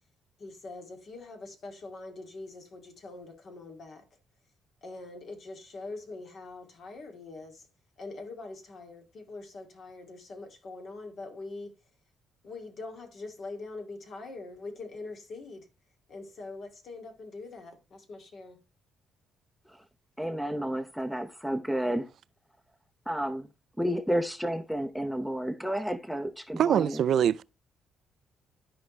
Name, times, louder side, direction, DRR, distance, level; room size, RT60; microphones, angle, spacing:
voice 1, 0.4-4.0 4.8-7.7 8.0-11.7 12.4-15.7 16.1-18.6, left 3 dB, 60° left, 2.5 m, -43 dB
voice 2, 20.2-22.1 23.1-23.5 23.8-27.0, equal, ahead, 0.8 m, -31 dB
voice 3, 26.6-27.4, right 9 dB, 65° right, 0.4 m, -24 dB
12.5 x 4.8 x 3.2 m
cardioid pair, 90°, 0 cm